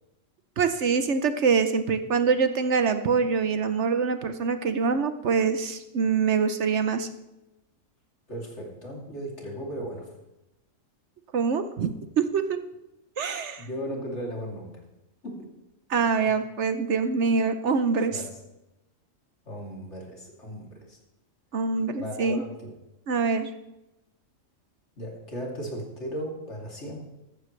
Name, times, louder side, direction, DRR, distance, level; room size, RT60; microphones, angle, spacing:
voice 1, 0.6-7.1 11.3-11.9 12.2-12.6 13.2-13.7 15.9-18.2 21.5-22.4 23.1-23.5, right 5 dB, 65° right, 9 dB, 1.0 m, -24 dB
voice 2, 8.3-10.1 13.6-14.8 15.2-15.5 16.2-16.4 18.1-18.4 19.5-21.0 22.0-22.7 25.0-27.0, equal, 55° left, -1 dB, 3.2 m, -36 dB
14.5 x 13.5 x 3.3 m, 0.95 s
omnidirectional pair, 1.4 m